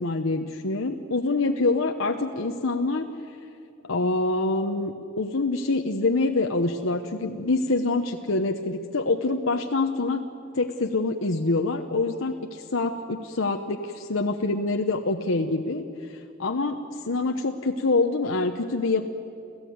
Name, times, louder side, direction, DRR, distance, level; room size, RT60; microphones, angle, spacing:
voice 1, 0.0-3.1 3.8-10.2 10.5-16.8 17.1-19.1, left 3 dB, 85° left, 4 dB, 1.0 m, -26 dB
29.5 x 14.5 x 9.4 m, 2.6 s
head